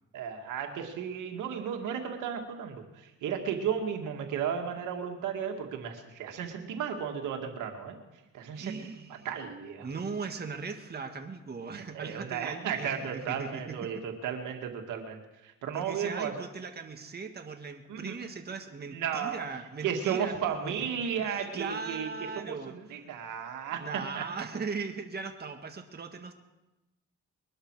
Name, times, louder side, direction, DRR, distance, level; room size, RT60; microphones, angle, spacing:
voice 1, 0.1-8.0 8.3-8.7 9.2-9.9 11.7-16.3 17.9-18.2 18.9-19.4 19.8-22.1 22.4-24.2, right 7 dB, 85° right, 3 dB, 2.2 m, -34 dB
voice 2, 8.5-9.3 9.8-13.9 15.7-20.7 21.2-22.7 23.8-26.3, right 5 dB, 35° right, 4 dB, 1.7 m, -39 dB
22.5 x 12.0 x 4.8 m, 1.0 s
cardioid pair, 90°, 30 cm